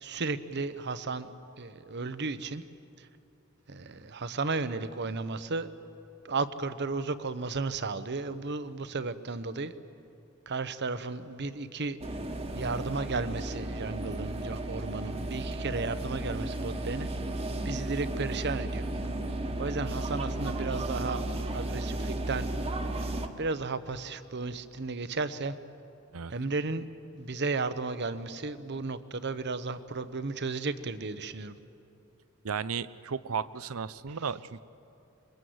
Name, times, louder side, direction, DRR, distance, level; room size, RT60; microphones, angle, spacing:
voice 1, 0.0-1.3 1.6-2.6 3.0-3.1 3.7-5.7 6.2-9.7 10.5-12.0 12.5-17.1 17.6-18.9 19.6-21.2 21.5-22.5 23.0-23.1 23.4-25.6 26.3-26.9 27.1-31.6, right 3 dB, 55° right, 12 dB, 1.0 m, -34 dB
sound 1, 12.0-23.3, right 1 dB, 30° right, 1.4 m, -34 dB
voice 2, 32.4-34.6, right 6 dB, 85° right, 16 dB, 0.7 m, -34 dB
26.5 x 22.5 x 8.0 m, 2.7 s
head